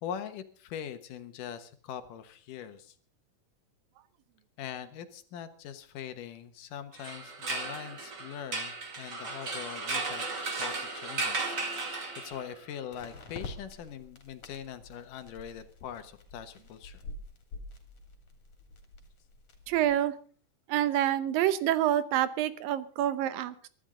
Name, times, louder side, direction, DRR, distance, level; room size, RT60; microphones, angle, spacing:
voice 1, 0.0-3.0 4.6-10.2 10.6-17.0, left 9 dB, 75° left, 9 dB, 2.7 m, -42 dB
sound 1, 6.1-6.2 12.9-20.0, left 2 dB, 45° left, 3.6 m, -47 dB
sound 2, 6.9-12.6, right 3 dB, 35° right, 2.7 m, -35 dB
voice 2, 19.7-20.1 20.7-23.7, right 12 dB, 90° right, 14 dB, 2.7 m, -27 dB
23.0 x 12.5 x 3.8 m, 0.42 s
omnidirectional pair, 3.9 m